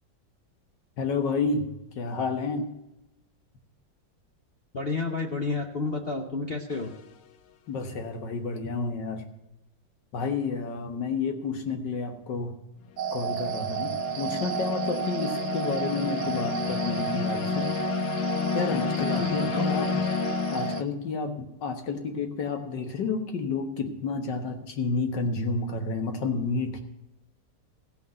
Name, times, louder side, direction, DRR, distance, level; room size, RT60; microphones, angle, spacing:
voice 1, 1.0-1.7 2.0-2.7 7.7-9.2 10.1-12.5 13.1-17.7 18.5-19.9 20.5-26.8, left 4 dB, 70° left, 6 dB, 2.0 m, -30 dB
voice 2, 4.7-6.9 19.1-19.7, left 3 dB, 45° left, 3 dB, 0.8 m, -31 dB
sound 1, 6.7-7.1 13.0-20.8, left 8 dB, 90° left, 1.5 m, -31 dB
sound 2, 13.0-20.8, right 8 dB, 75° right, 0.6 m, -32 dB
15.5 x 5.8 x 7.7 m, 0.93 s
omnidirectional pair, 2.0 m